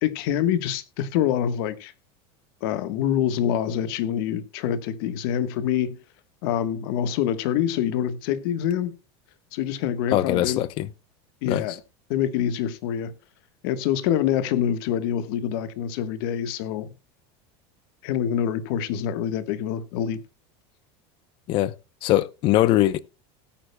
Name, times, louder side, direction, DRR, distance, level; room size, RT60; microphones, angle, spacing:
voice 1, 0.0-1.9 2.6-6.0 6.4-9.0 9.5-10.6 11.4-11.7 12.1-13.1 13.6-16.9 18.0-20.2, left 10 dB, 60° left, 1.3 m, -25 dB
voice 2, 10.1-10.9 11.4-11.7 21.5-21.7 22.0-23.0, left 14 dB, 40° left, 0.7 m, -21 dB
19.0 x 8.8 x 2.2 m
supercardioid pair, 170°, 14 cm